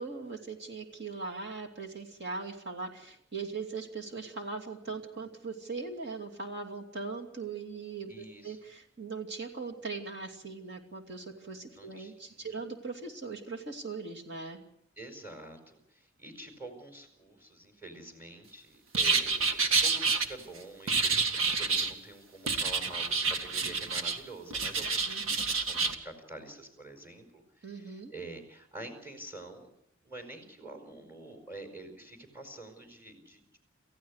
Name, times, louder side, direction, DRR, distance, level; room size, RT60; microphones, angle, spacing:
voice 1, 0.0-8.1 8.4-14.6 24.8-25.2 27.6-28.1, right 4 dB, 55° right, 2 dB, 2.7 m, -40 dB
voice 2, 8.1-8.6 11.7-12.6 15.0-29.7 30.0-33.6, right 2 dB, 10° right, 6 dB, 4.7 m, -47 dB
sound 1, 18.9-20.2 20.9-21.9 22.5-24.2 24.5-25.9, right 4 dB, 75° right, 1.9 m, -28 dB
28.5 x 15.0 x 6.5 m, 0.73 s
head